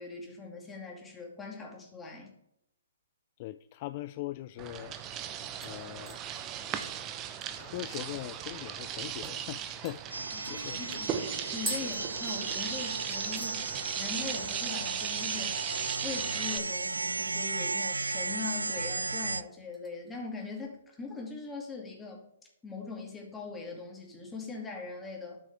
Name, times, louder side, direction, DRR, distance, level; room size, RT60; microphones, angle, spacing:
voice 1, 0.0-2.3 10.3-11.1 11.5-15.6 16.0-22.2 22.6-25.4, left 4 dB, 10° left, 2.4 m, -41 dB
voice 2, 3.4-5.0 5.6-6.2 7.6-11.0 11.8-11.9, left 16 dB, 40° left, 0.3 m, -41 dB
sound 1, 4.5-4.6 5.0-5.3 5.6-8.4 8.8-8.9 9.2-9.4 9.8-12.8 13.1-13.6 13.9-14.3 14.6-14.7 16.8-17.4 17.8-18.5 18.9-19.2 19.7-20.6 21.0-21.1, right 1 dB, 5° right, 1.6 m, -45 dB
sound 2, 4.6-16.6, right 9 dB, 25° right, 0.8 m, -38 dB
sound 3, 10.1-19.4, right 3 dB, 85° right, 0.3 m, -35 dB
13.0 x 6.1 x 3.5 m
figure-of-eight pair, 125°, 0 cm